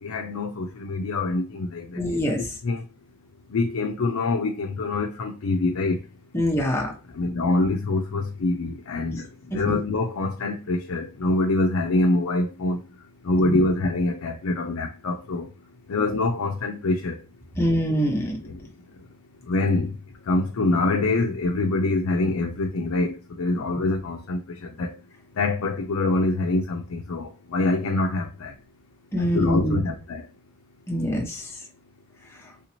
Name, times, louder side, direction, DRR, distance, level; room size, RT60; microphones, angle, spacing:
voice 1, 0.0-2.8 3.5-6.0 7.1-9.3 9.5-12.8 13.2-15.5 15.9-17.2 18.4-18.6 19.5-19.9 20.3-25.0 25.4-28.5 29.2-30.3, left 2 dB, 80° left, 0.5 m, -25 dB
voice 2, 2.0-2.5 6.3-6.9 9.5-9.6 13.5-13.6 17.6-18.3 29.1-29.8 30.9-31.5, equal, 10° left, 0.8 m, -24 dB
3.4 x 2.8 x 2.9 m
head